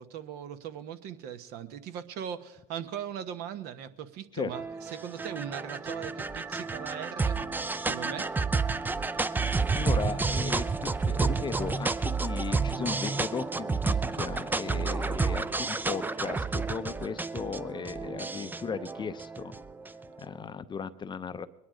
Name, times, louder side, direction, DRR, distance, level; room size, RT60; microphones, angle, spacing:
voice 1, 0.0-7.4 7.8-8.3, right 9 dB, 60° right, 10 dB, 1.1 m, -39 dB
sound 1, 4.5-20.1, right 4 dB, 10° right, 0.5 m, -30 dB
voice 2, 9.7-19.6 20.2-21.5, left 6 dB, 25° left, 12 dB, 0.7 m, -36 dB
Male speech man speaking, 14.1-14.6 15.2-15.6 16.2-16.5 17.0-17.4 17.8-18.2 18.6-19.1, right 5 dB, 40° right, 2.2 m, -55 dB
21.5 x 10.0 x 5.1 m, 1.0 s
hypercardioid pair, 90°, 18 cm